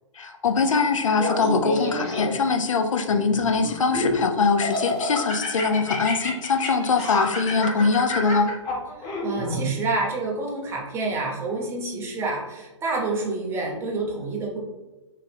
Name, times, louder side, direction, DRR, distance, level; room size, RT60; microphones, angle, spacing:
voice 1, 0.2-8.5, left 4 dB, 85° left, 6 dB, 0.4 m, -22 dB
Laughter, 1.2-2.5 3.1-4.2 4.6-9.6, left 2 dB, 25° left, 0.9 m, -29 dB
voice 2, 9.0-14.6, right 3 dB, 15° right, -2 dB, 0.8 m, -28 dB
2.9 x 2.3 x 3.4 m, 1.1 s
figure-of-eight pair, 120°, 16 cm